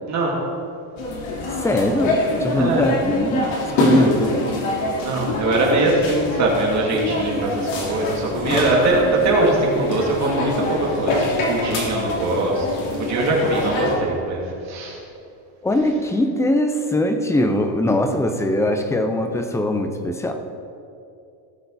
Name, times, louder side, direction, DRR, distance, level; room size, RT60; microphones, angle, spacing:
sound 1, 1.0-14.0, left 2 dB, 70° left, 2.7 m, -25 dB
voice 1, 1.6-3.5 3.8-4.5 6.9-7.8 8.4-8.7 15.6-20.3, left 1 dB, 5° left, 6 dB, 0.4 m, -21 dB
voice 2, 2.5-2.9 5.0-15.0, right 2 dB, 35° right, -3 dB, 2.8 m, -21 dB
17.5 x 6.7 x 4.1 m, 2.6 s
cardioid pair, 155°, 48 cm